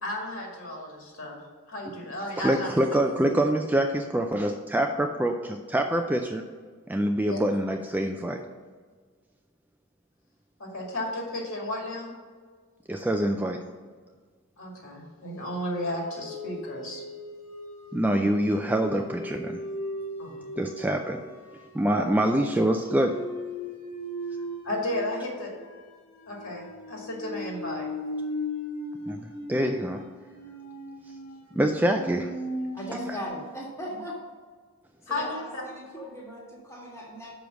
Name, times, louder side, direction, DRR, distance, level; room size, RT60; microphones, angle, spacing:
voice 1, 0.0-1.4 1.7-2.7 7.2-7.4 10.6-12.1 14.6-17.0 18.1-18.2 20.2-20.4 22.0-22.1 24.6-25.5 26.3-27.9 35.1-35.6, left 1 dB, 65° left, -1 dB, 2.2 m, -33 dB
voice 2, 2.4-6.4 6.9-8.4 12.9-13.6 17.9-19.6 20.6-21.2 21.7-23.2 29.1-30.0 31.5-32.3 33.1-33.2, right 1 dB, 10° right, 4 dB, 0.3 m, -25 dB
sound 1, 15.3-33.3, left 1 dB, 80° left, 1.5 m, -38 dB
voice 3, 32.7-34.2 35.1-37.3, equal, 10° left, -3 dB, 1.6 m, -38 dB
6.1 x 5.2 x 6.1 m, 1.5 s
head